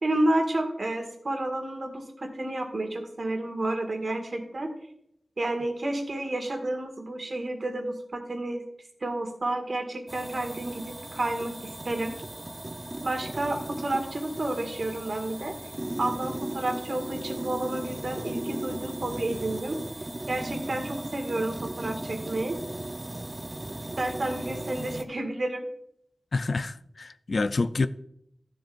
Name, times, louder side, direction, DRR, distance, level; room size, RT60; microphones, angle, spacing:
voice 1, 0.0-4.7 5.4-8.6 9.0-11.5 11.8-12.2 13.0-15.5 16.0-19.8 20.3-22.6 24.0-25.6, right 1 dB, 60° right, 1.8 m, -30 dB
sound 1, 10.1-25.0, right 1 dB, 30° right, 0.8 m, -37 dB
voice 2, 26.3-27.9, left 3 dB, 65° left, 0.4 m, -27 dB
13.5 x 7.4 x 2.5 m
wide cardioid pair, 65°, 0 cm